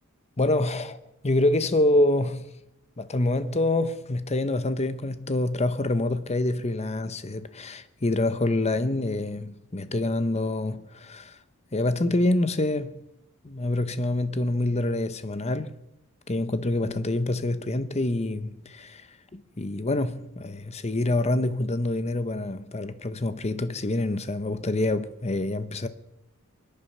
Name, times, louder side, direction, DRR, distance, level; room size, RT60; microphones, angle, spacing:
voice 1, 0.4-1.0 1.2-2.5 3.0-11.4 11.7-13.0 13.4-15.7 16.3-19.0 19.3-25.9, left 2 dB, 30° left, 0.9 m, -26 dB
24.0 x 10.5 x 5.5 m
head